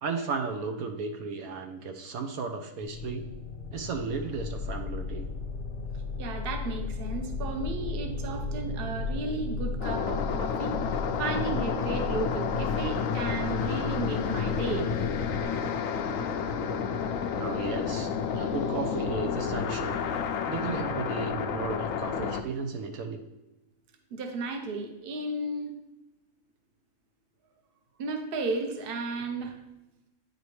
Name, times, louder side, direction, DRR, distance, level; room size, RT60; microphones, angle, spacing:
voice 1, 0.0-3.3 3.7-5.3 17.4-18.1 18.3-20.0 20.5-23.2, right 5 dB, 75° right, 5 dB, 1.1 m, -34 dB
sound 1, 2.8-15.4, left 4 dB, 50° left, 0.7 m, -35 dB
voice 2, 6.2-14.9 24.1-25.7 28.0-29.6, right 3 dB, 45° right, 5 dB, 0.9 m, -34 dB
sound 2, 9.8-22.4, left 6 dB, 70° left, 0.9 m, -30 dB
9.2 x 5.1 x 3.2 m, 1.0 s
omnidirectional pair, 1.6 m